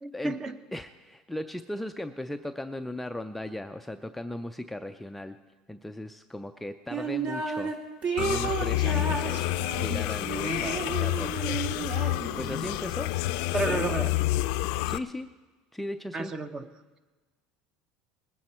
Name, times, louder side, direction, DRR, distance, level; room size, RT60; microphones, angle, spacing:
voice 1, 0.0-0.6 13.5-14.1 16.1-16.7, right 3 dB, 25° right, 10 dB, 0.9 m, -31 dB
voice 2, 0.7-5.4 5.7-7.7 8.2-11.7 12.3-13.1 13.7-13.9 14.8-15.4 15.7-16.3, left 1 dB, 5° left, 6 dB, 0.4 m, -37 dB
sound 1, 6.9-7.7 8.0-12.7, right 5 dB, 50° right, 2.2 m, -32 dB
sound 2, 8.2-15.0, left 16 dB, 70° left, 0.5 m, -29 dB
20.0 x 9.3 x 4.4 m, 1.3 s
supercardioid pair, 125°, 2 cm